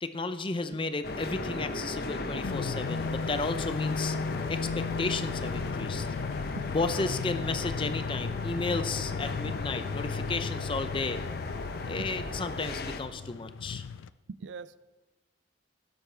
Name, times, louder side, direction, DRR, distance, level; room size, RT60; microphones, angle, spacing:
voice 1, 0.0-4.2 4.5-6.1 6.7-11.2 11.9-13.8, left 3 dB, 25° left, 10 dB, 0.5 m, -33 dB
sound 1, 1.0-13.0, left 2 dB, 55° left, 0.8 m, -36 dB
sound 2, 2.4-14.1, left 5 dB, 90° left, 0.4 m, -36 dB
voice 2, 14.3-14.8, right 4 dB, 70° right, 17 dB, 0.4 m, -41 dB
13.0 x 10.5 x 3.3 m, 1.2 s
head